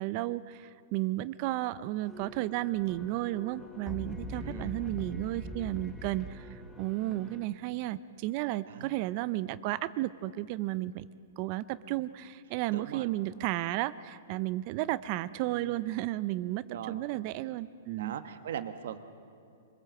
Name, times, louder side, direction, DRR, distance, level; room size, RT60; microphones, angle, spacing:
voice 1, 0.0-11.1 11.4-18.1, right 16 dB, 40° right, 16 dB, 0.6 m, -33 dB
sound 1, 2.0-7.4, left 1 dB, 5° left, 1.5 m, -43 dB
voice 2, 4.4-4.8 8.7-8.9 12.7-13.1 15.5-15.9 16.7-17.0 18.0-19.0, right 9 dB, 65° right, 9 dB, 1.4 m, -40 dB
25.5 x 20.5 x 7.7 m, 2.5 s
hypercardioid pair, 145°, 0 cm